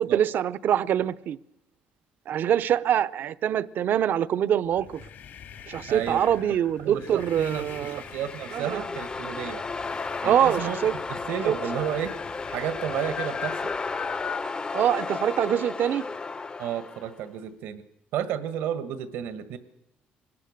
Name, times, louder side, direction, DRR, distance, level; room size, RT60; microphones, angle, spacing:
voice 1, 0.0-1.4 2.3-5.0 5.7-8.0 8.5-8.8 10.2-10.9 11.5-11.6 14.7-16.0, right 10 dB, 65° right, 16 dB, 0.7 m, -24 dB
sound 1, 4.7-14.5, left 9 dB, 70° left, 2.9 m, -42 dB
voice 2, 5.9-6.3 6.8-9.6 10.2-10.8 11.1-12.1 12.5-13.7 16.6-17.8 18.1-19.6, right 9 dB, 85° right, 11 dB, 1.5 m, -32 dB
sound 2, 7.3-17.2, left 4 dB, 25° left, 0.7 m, -34 dB
24.5 x 20.0 x 6.6 m, 0.88 s
cardioid pair, 95°, 4 cm